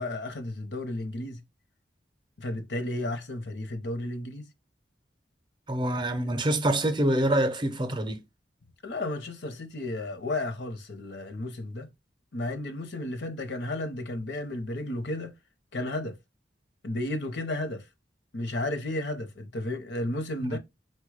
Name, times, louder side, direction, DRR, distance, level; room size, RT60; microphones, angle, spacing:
voice 1, 0.0-1.4 2.4-4.5 8.8-11.9 12.3-15.3 15.7-16.2 16.8-17.9 18.3-20.6, left 1 dB, 70° left, 0.7 m, -33 dB
voice 2, 5.7-8.2 20.4-20.6, right 1 dB, 25° right, 0.6 m, -26 dB
4.3 x 2.2 x 4.6 m
head